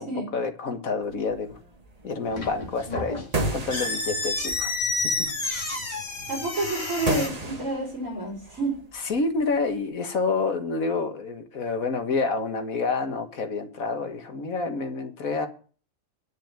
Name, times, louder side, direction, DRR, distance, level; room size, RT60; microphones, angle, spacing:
voice 1, 0.0-1.6 2.0-3.3 3.5-4.8 5.2-5.3 8.9-15.5, left 4 dB, 80° left, 6 dB, 2.0 m, -28 dB
sound 1, 1.0-9.9, right 2 dB, 30° right, 1.5 m, -37 dB
sound 2, 2.2-7.3, left 2 dB, 30° left, 2.3 m, -30 dB
voice 2, 6.3-8.8, right 2 dB, 65° right, -2 dB, 5.6 m, -29 dB
10.0 x 6.5 x 8.9 m, 0.40 s
omnidirectional pair, 1.4 m